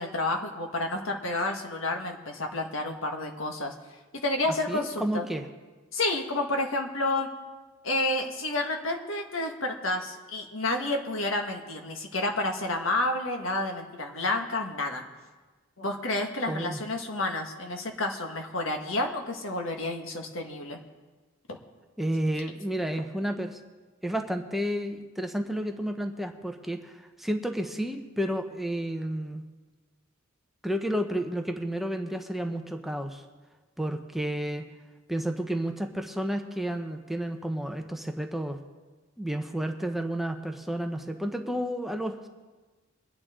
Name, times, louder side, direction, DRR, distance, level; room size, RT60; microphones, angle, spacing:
voice 1, 0.0-3.7 4.2-5.3 5.9-7.3 7.8-15.0 15.8-20.8 21.5-21.6, left 2 dB, 75° left, 3 dB, 1.6 m, -30 dB
voice 2, 4.7-5.5 16.5-16.8 22.0-23.6 24.0-29.4 30.6-33.2 33.8-34.6 35.1-38.6 39.2-42.3, right 1 dB, ahead, 4 dB, 0.8 m, -31 dB
23.0 x 9.5 x 3.8 m, 1.3 s
head